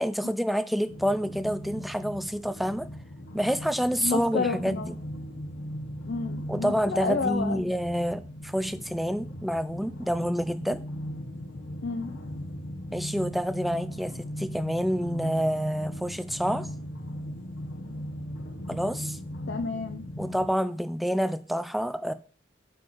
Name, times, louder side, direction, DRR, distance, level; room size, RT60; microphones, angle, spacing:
voice 1, 0.0-2.9 3.3-5.0 6.5-10.8 12.9-16.7 18.7-19.2 20.2-22.1, equal, ahead, 0.4 m, -28 dB
sound 1, 0.8-20.5, equal, 90° left, 1.1 m, -38 dB
voice 2, 4.0-4.9 6.1-7.6 11.8-12.1 19.5-20.1, left 4 dB, 60° left, 0.6 m, -30 dB
6.5 x 4.3 x 6.4 m
head